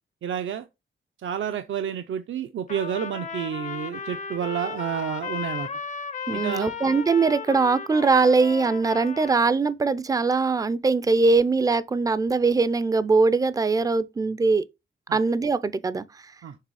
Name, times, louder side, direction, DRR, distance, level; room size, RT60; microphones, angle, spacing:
voice 1, 0.2-0.7 1.2-5.7 6.3-6.7 15.1-15.2 16.4-16.6, right 9 dB, 70° right, 0.5 m, -30 dB
Trumpet, 2.7-9.4, left 6 dB, 35° left, 0.5 m, -35 dB
voice 2, 6.3-14.6 15.1-16.0, right 4 dB, 15° right, 0.4 m, -21 dB
6.7 x 3.1 x 4.7 m
wide cardioid pair, 150°, 21 cm